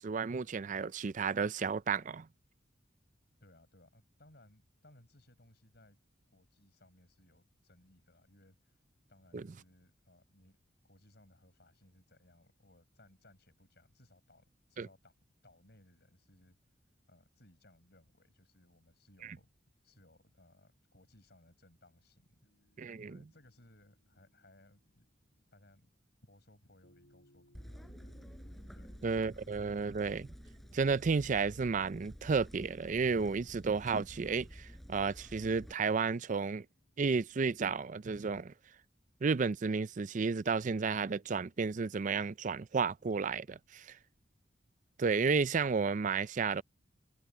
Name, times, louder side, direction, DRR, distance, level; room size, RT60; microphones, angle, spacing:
voice 1, 0.0-2.3 9.3-9.4 14.8-14.9 22.8-23.1 29.0-30.3 30.7-36.7 37.0-38.5 39.2-44.0 45.0-46.6, right 5 dB, 40° right, 0.4 m, -32 dB
voice 2, 3.4-6.0 6.3-8.8 9.1-10.6 10.8-15.1 15.4-16.6 17.1-19.5 19.8-22.4 23.1-25.1 25.5-25.9 26.2-28.1 28.7-29.0, left 1 dB, 60° left, 6.9 m, -64 dB
sound 1, 22.4-25.3 26.8-38.1, equal, 90° left, 4.5 m, -69 dB
sound 2, 27.5-35.7, equal, ahead, 4.4 m, -51 dB
head